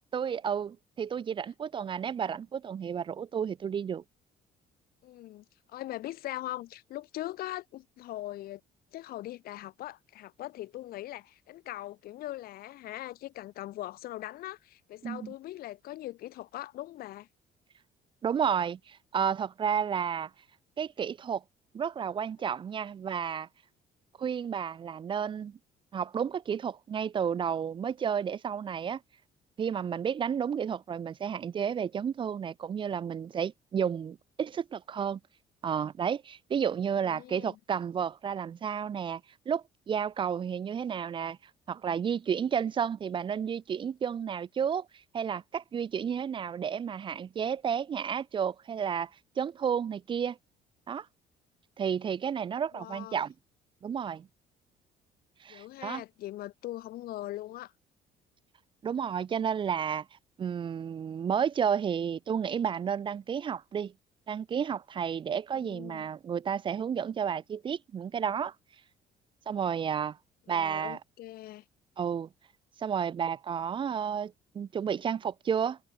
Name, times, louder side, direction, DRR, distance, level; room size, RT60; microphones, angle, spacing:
voice 1, 0.1-4.0 15.0-15.3 18.2-20.3 20.8-21.4 21.7-23.5 24.2-25.6 25.9-29.0 29.6-35.2 35.6-39.2 39.5-41.4 41.7-44.9 45.1-49.1 49.4-50.4 50.9-51.1 51.8-53.3 53.8-54.3 55.4-56.0 58.8-60.1 60.4-63.9 64.3-68.5 69.5-70.2 70.5-71.0 72.0-72.3 72.8-75.8, right 7 dB, 30° right, 0.4 m, -31 dB
voice 2, 5.0-8.6 8.9-17.3 37.0-37.6 52.7-53.3 55.5-57.7 65.5-66.1 70.5-71.6, left 15 dB, 60° left, 0.5 m, -41 dB
cardioid pair, 110°, 17 cm